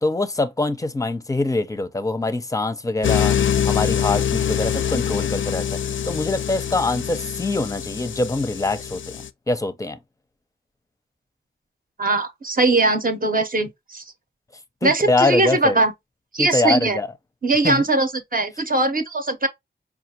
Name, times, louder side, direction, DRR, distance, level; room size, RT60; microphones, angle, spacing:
voice 1, 0.0-3.3 3.6-5.8 6.1-10.0 14.8-15.8 16.4-17.1 17.6-17.9, left 2 dB, 15° left, 0.5 m, -24 dB
sound 1, 3.0-9.3, left 8 dB, 75° left, 0.4 m, -24 dB
voice 2, 12.0-14.0 14.8-15.9 16.3-17.0 17.4-19.5, right 2 dB, 45° right, 0.8 m, -20 dB
4.9 x 2.4 x 2.8 m
wide cardioid pair, 85°, 20 cm